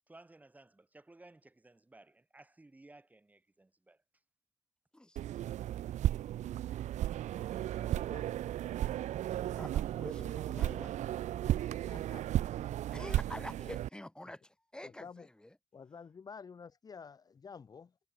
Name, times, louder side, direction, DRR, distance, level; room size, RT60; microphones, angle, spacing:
voice 1, 0.1-4.0, right 2 dB, 15° right, 3.1 m, -58 dB
sound 1, 5.2-13.9, right 12 dB, 75° right, 0.4 m, -35 dB
voice 2, 7.5-8.3 10.1-10.3 11.9-13.1 14.8-15.3 15.7-18.0, left 6 dB, 30° left, 0.9 m, -51 dB
voice 3, 9.6-11.0 11.8-11.9 12.9-15.5, left 1 dB, 5° left, 2.1 m, -47 dB
wide cardioid pair, 165°, 12 cm